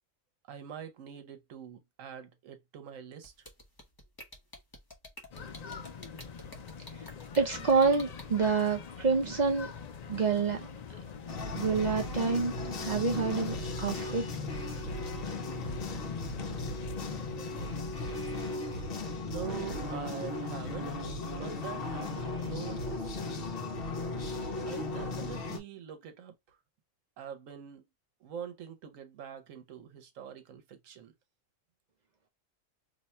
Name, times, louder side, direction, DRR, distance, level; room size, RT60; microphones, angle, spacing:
voice 1, 0.5-3.3 19.2-21.0 21.3-23.7 24.6-26.3 27.2-27.8 28.2-31.1, right 9 dB, 80° right, 1.1 m, -44 dB
sound 1, 3.2-8.2, left 1 dB, 25° left, 0.6 m, -48 dB
sound 2, 5.3-18.6, left 6 dB, 80° left, 0.3 m, -44 dB
voice 2, 7.4-9.7 10.1-10.6 11.5-12.5 12.8-13.6 13.8-14.2, right 4 dB, 50° right, 0.5 m, -27 dB
sound 3, 11.3-25.6, left 2 dB, 55° left, 0.8 m, -36 dB
2.7 x 2.2 x 4.1 m
omnidirectional pair, 1.4 m